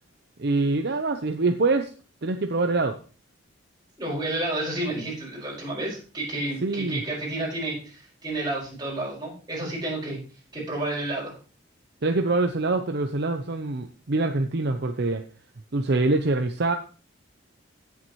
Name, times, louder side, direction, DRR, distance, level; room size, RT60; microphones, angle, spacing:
voice 1, 0.4-1.9 2.2-3.0 6.6-7.0 12.0-15.2 15.7-16.7, right 3 dB, 55° right, 6 dB, 0.7 m, -24 dB
voice 2, 4.0-10.2 10.5-11.4, right 2 dB, 20° right, -4 dB, 5.1 m, -30 dB
17.0 x 7.2 x 3.1 m, 0.37 s
head